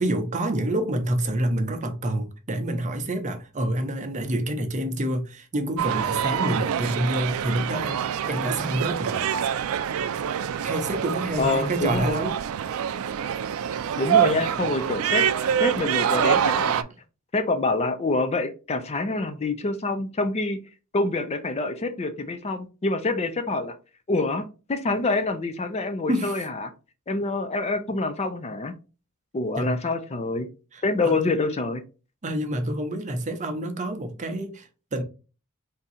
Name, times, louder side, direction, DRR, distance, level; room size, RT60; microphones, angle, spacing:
voice 1, 0.0-9.3 10.6-12.3 26.1-26.4 29.5-29.8 30.7-31.2 32.2-35.0, right 1 dB, 35° right, 0.7 m, -28 dB
sound 1, 5.8-16.8, right 8 dB, 70° right, 0.3 m, -25 dB
voice 2, 11.4-12.3 14.0-16.8 17.3-20.6 20.9-23.7 24.1-26.7 27.1-28.7 29.3-30.5 30.8-31.8, left 3 dB, 30° left, 0.4 m, -26 dB
3.6 x 2.7 x 4.1 m
head